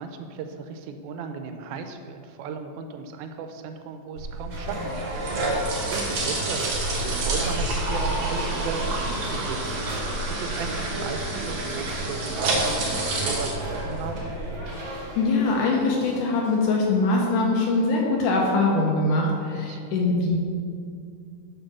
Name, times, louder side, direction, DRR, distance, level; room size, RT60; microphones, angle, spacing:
voice 1, 0.0-10.0 10.3-14.2 19.5-19.9, right 5 dB, 85° right, 7 dB, 2.4 m, -36 dB
sound 1, 4.2-14.5, right 2 dB, 60° right, 1.7 m, -28 dB
sound 2, 4.5-16.6, equal, 40° right, 1.9 m, -39 dB
voice 2, 15.2-20.4, left 3 dB, 75° left, -1 dB, 2.0 m, -22 dB
6.7 x 5.3 x 6.0 m, 2.3 s
omnidirectional pair, 4.3 m